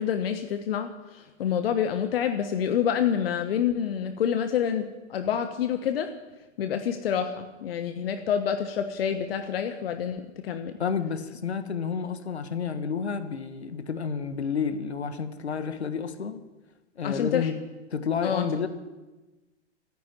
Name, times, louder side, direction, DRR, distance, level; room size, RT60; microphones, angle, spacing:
voice 1, 0.0-6.1 6.6-10.8 17.0-17.5 18.2-18.4, left 8 dB, 60° left, 8 dB, 1.2 m, -27 dB
voice 2, 10.8-16.4 17.0-17.5 17.9-18.7, left 6 dB, 75° left, 10 dB, 1.5 m, -30 dB
14.0 x 10.5 x 8.9 m, 1.2 s
figure-of-eight pair, 100°, 33 cm